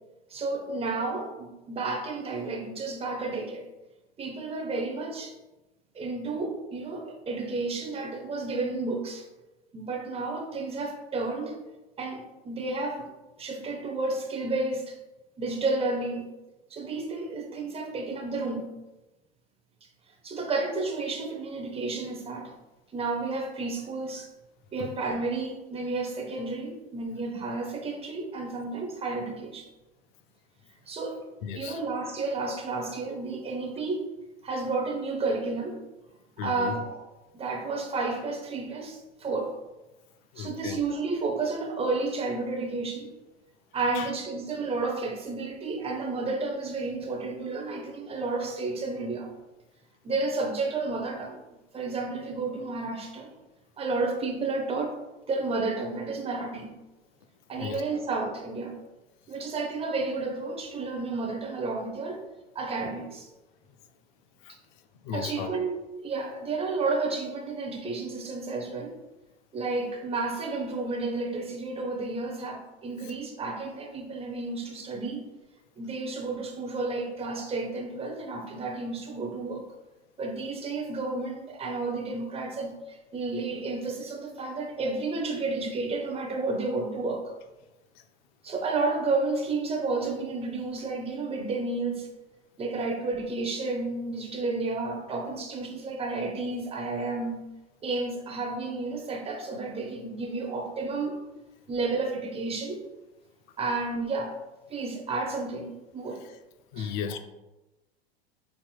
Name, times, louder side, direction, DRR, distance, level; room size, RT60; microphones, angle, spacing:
voice 1, 0.3-3.6 4.2-5.3 5.9-9.2 9.7-11.6 12.0-13.1 13.4-15.0 15.4-16.2 16.7-18.7 20.2-22.5 22.9-24.3 24.7-29.7 30.9-31.2 31.5-34.0 34.4-35.8 36.4-37.0 37.3-39.5 40.4-43.1 43.7-49.3 50.0-51.4 51.7-53.3 53.8-54.9 55.3-56.7 57.5-58.7 59.3-62.2 62.5-63.3 65.1-65.8 66.0-69.0 69.5-75.2 75.8-79.7 80.2-87.3 88.4-92.1 92.6-97.4 97.8-101.2 101.7-102.8 103.6-104.3 104.7-106.2 106.8-107.0, right 3 dB, 20° right, 2 dB, 0.6 m, -31 dB
voice 2, 31.4-31.8 36.4-36.8 40.3-40.8 43.9-44.1 57.6-57.8 64.4-64.5 65.0-65.6 106.7-107.2, left 7 dB, 50° left, 9 dB, 0.4 m, -35 dB
5.5 x 2.8 x 2.2 m, 1.0 s
hypercardioid pair, 90°, 32 cm